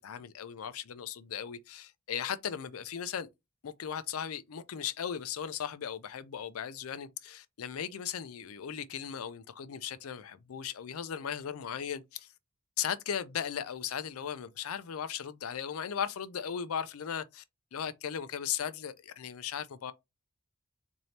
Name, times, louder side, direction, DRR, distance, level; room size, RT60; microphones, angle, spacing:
voice 1, 0.0-3.3 3.6-12.3 12.8-17.4 17.7-19.9, left 8 dB, 85° left, 0.5 m, -37 dB
4.1 x 2.7 x 3.2 m
head